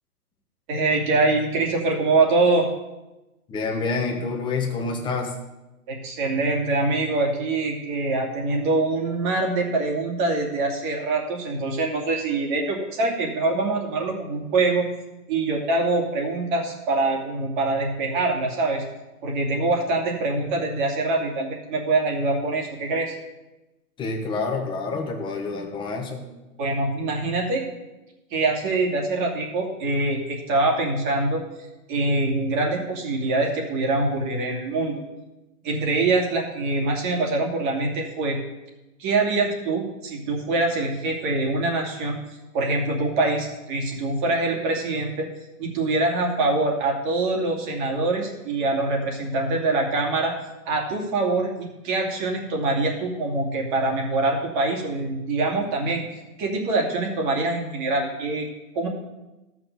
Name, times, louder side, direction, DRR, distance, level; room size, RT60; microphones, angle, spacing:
voice 1, 0.7-2.7 5.9-14.9 15.3-18.8 19.2-23.2 26.6-27.6 28.3-31.4 31.9-35.0 35.6-38.4 39.0-42.2 42.5-45.3 45.6-50.3 50.7-56.0 56.4-58.5 58.7-58.9, right 2 dB, 35° right, 0 dB, 2.7 m, -24 dB
voice 2, 3.5-5.3 24.0-26.2, left 4 dB, 10° left, 1 dB, 1.2 m, -27 dB
13.5 x 6.2 x 6.9 m, 1.0 s
hypercardioid pair, 150°, 45 cm